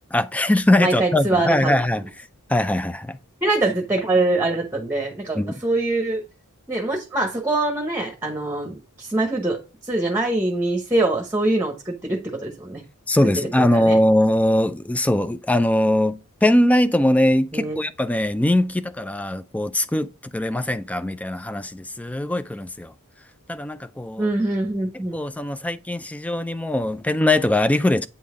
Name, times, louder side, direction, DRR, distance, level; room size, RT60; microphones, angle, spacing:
voice 1, 0.1-2.0 2.5-3.2 5.3-5.6 13.1-22.9 23.5-24.3 25.1-28.1, left 1 dB, 5° left, 0.3 m, -21 dB
voice 2, 0.8-1.7 3.4-6.2 6.7-9.6 9.8-12.8 13.6-14.0 17.5-17.8 24.2-25.2, right 2 dB, 10° right, 0.9 m, -23 dB
8.4 x 3.9 x 3.6 m
head